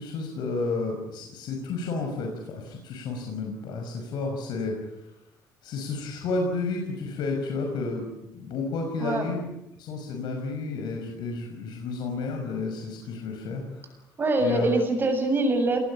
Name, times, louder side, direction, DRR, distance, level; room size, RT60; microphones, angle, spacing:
voice 1, 0.0-5.1 5.6-9.5 9.8-14.0 14.4-14.7, left 3 dB, 75° left, 2 dB, 5.9 m, -31 dB
voice 2, 14.2-15.8, right 2 dB, 30° right, 5 dB, 7.8 m, -24 dB
28.5 x 20.5 x 8.7 m, 0.85 s
cardioid pair, 125°, 7 cm